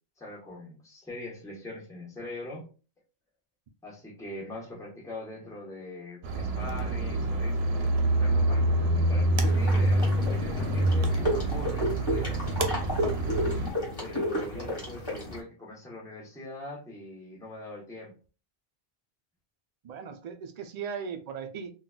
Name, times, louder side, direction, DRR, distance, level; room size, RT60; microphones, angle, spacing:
voice 1, 0.2-2.7 3.8-12.5 14.0-18.1, left 2 dB, 5° left, 0.9 m, -42 dB
sound 1, 6.2-13.7, right 1 dB, 80° right, 0.8 m, -26 dB
sound 2, 9.4-15.4, equal, 25° left, 1.3 m, -32 dB
voice 2, 14.4-14.7 19.8-21.7, right 6 dB, 55° right, 0.5 m, -38 dB
3.7 x 2.2 x 2.2 m
omnidirectional pair, 1.0 m